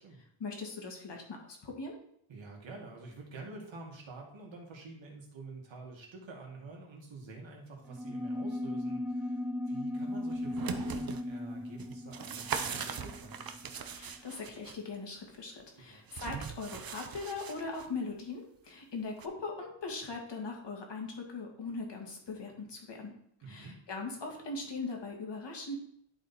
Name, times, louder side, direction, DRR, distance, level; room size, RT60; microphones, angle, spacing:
voice 1, 0.4-2.0 13.9-23.1 23.5-25.8, left 3 dB, 55° left, 1 dB, 1.9 m, -40 dB
voice 2, 2.3-13.5 15.7-16.0 23.4-23.8, right 3 dB, 65° right, 0 dB, 2.1 m, -48 dB
sound 1, 7.9-13.8, left 1 dB, 5° right, 0.7 m, -37 dB
sound 2, 10.3-11.2 11.8-14.8 16.1-17.9 19.2-19.3, right 7 dB, 45° right, 0.6 m, -40 dB
11.0 x 4.1 x 4.2 m, 0.69 s
wide cardioid pair, 175°, 50 cm